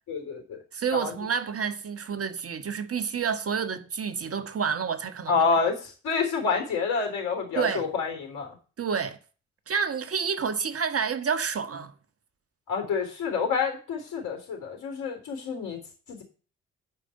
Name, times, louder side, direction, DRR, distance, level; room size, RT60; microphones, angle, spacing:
voice 1, 0.1-0.6 0.9-1.1 5.3-8.6 12.7-15.8 16.1-16.2, left 5 dB, 70° left, 3.6 m, -28 dB
voice 2, 0.7-5.4 7.5-7.9 8.8-9.2 9.7-11.9, right 6 dB, 45° right, 1.6 m, -29 dB
9.9 x 5.4 x 7.8 m
hypercardioid pair, 45°, 32 cm